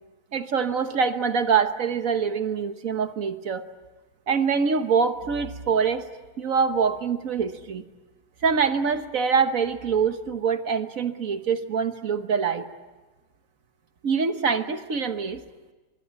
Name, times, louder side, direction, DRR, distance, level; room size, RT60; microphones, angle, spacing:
voice 1, 0.3-3.6 4.3-6.1 6.4-7.8 8.4-12.6 14.0-15.4, right 6 dB, 50° right, 9 dB, 1.4 m, -24 dB
25.5 x 23.5 x 8.8 m, 1.2 s
omnidirectional pair, 2.2 m